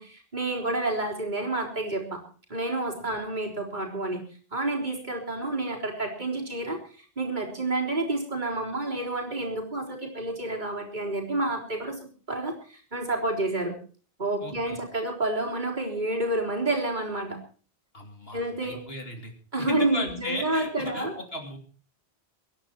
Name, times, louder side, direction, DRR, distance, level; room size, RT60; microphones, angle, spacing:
voice 1, 0.0-2.2 2.5-4.2 4.5-6.8 7.2-12.0 12.3-13.8 14.2-17.4 18.3-18.8 19.5-21.1, right 2 dB, 50° right, -1 dB, 4.1 m, -29 dB
voice 2, 14.4-14.8 17.9-19.3 19.6-21.6, left 2 dB, 70° left, 4 dB, 3.2 m, -36 dB
23.0 x 11.0 x 4.5 m, 0.40 s
omnidirectional pair, 1.1 m